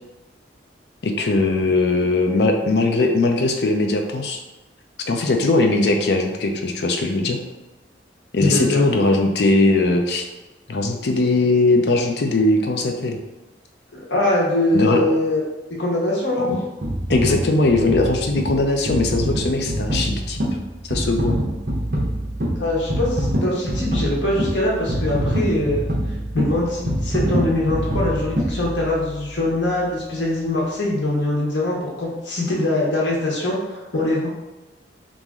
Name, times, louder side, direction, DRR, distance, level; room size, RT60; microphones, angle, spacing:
voice 1, 1.0-4.4 5.1-7.4 8.3-10.2 10.7-13.2 14.7-15.0 16.4-16.6 17.1-20.4 20.8-21.4, left 2 dB, 65° left, 3 dB, 0.5 m, -20 dB
voice 2, 8.4-8.8 13.9-15.4 15.8-16.5 22.6-25.8 26.3-34.3, left 1 dB, 90° left, -4 dB, 1.1 m, -22 dB
sound 1, 16.8-29.2 29.8-29.9, equal, 55° right, 0.9 m, -25 dB
3.0 x 2.6 x 3.6 m, 1.1 s
head